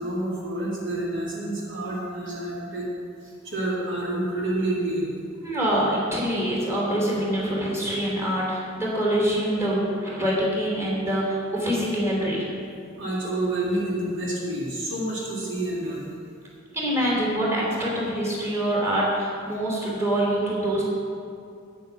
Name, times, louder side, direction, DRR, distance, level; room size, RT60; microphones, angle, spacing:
voice 1, 0.0-2.9 3.2-5.1 13.0-16.1, right 1 dB, 65° right, -5 dB, 2.4 m, -28 dB
voice 2, 5.4-12.5 16.7-20.8, right 1 dB, 15° right, -5 dB, 3.2 m, -25 dB
9.4 x 9.2 x 6.2 m, 2.4 s
head